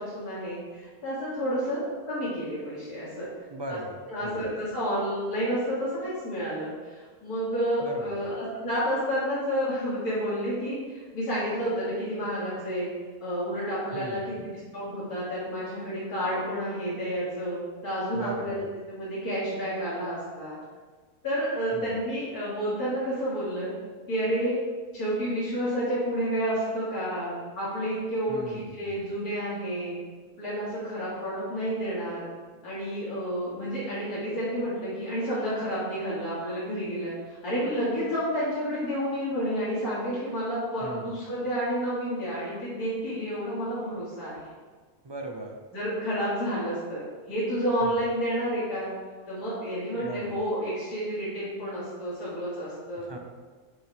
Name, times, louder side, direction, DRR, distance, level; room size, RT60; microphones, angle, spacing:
voice 1, 0.0-1.8 2.1-3.3 3.7-3.8 4.1-12.9 13.2-20.6 21.2-23.7 24.1-24.6 24.9-29.9 30.4-32.3 32.6-37.1 37.4-44.5 45.7-47.0 47.3-48.9 49.3-53.0, equal, 75° left, -10 dB, 2.7 m, -30 dB
voice 2, 3.5-4.4 7.8-8.2 13.9-14.4 18.1-18.7 21.7-22.0 28.3-29.0 40.8-41.3 45.0-45.6 47.8-48.0 50.0-50.4 53.0-53.2, right 2 dB, 35° right, 2 dB, 0.4 m, -39 dB
10.0 x 5.6 x 3.4 m, 1.4 s
omnidirectional pair, 1.6 m